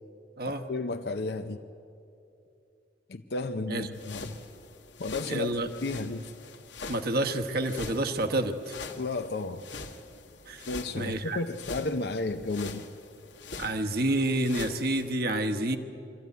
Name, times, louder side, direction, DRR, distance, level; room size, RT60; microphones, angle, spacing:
voice 1, 0.7-1.6 3.1-4.4 5.0-5.5 5.8-6.3 9.0-9.6 10.7-12.8, left 3 dB, 60° left, 6 dB, 0.6 m, -32 dB
sound 1, 3.9-15.1, left 4 dB, 90° left, 1.5 m, -44 dB
voice 2, 5.3-5.7 6.9-8.7 10.5-10.7 10.9-11.4 13.6-15.8, right 1 dB, 55° right, 5 dB, 1.1 m, -29 dB
24.5 x 14.0 x 9.3 m, 2.7 s
head